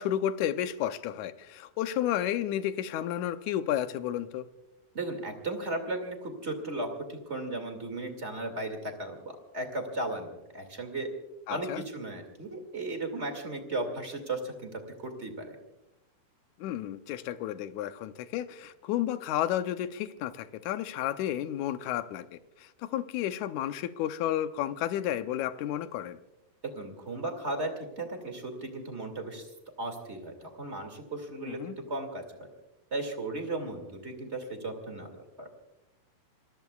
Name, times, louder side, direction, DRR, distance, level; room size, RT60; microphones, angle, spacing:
voice 1, 0.0-4.5 11.5-11.8 16.6-26.2 31.4-31.8, left 11 dB, 75° left, 10 dB, 1.8 m, -32 dB
voice 2, 4.9-11.1 11.5-15.6 26.8-29.5 29.8-32.2 32.9-35.5, right 2 dB, 25° right, 4 dB, 1.9 m, -36 dB
29.0 x 21.0 x 2.4 m, 0.96 s
omnidirectional pair, 4.0 m